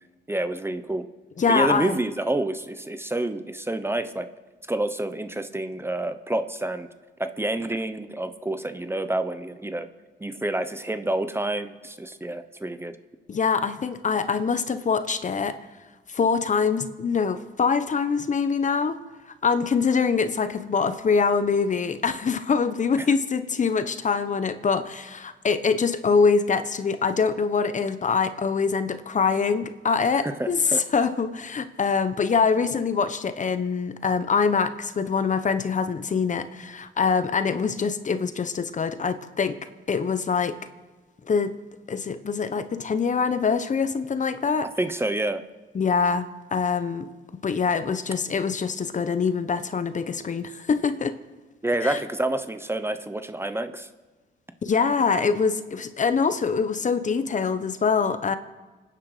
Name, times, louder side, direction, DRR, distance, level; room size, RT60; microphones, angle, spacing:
voice 1, 0.3-1.0 1.5-4.3 4.7-6.9 7.2-9.9 10.2-12.9 23.0-23.1 30.2-30.8 44.8-45.4 51.6-53.9, right 1 dB, 10° right, 10 dB, 1.0 m, -28 dB
voice 2, 1.4-2.0 13.3-15.6 16.1-19.0 19.4-39.6 39.9-40.6 41.3-41.5 41.9-44.7 45.7-47.1 47.4-51.2 51.8-52.0 54.6-58.4, left 5 dB, 40° left, 11 dB, 1.1 m, -24 dB
26.0 x 10.0 x 5.0 m, 1.3 s
cardioid pair, 90°, 20 cm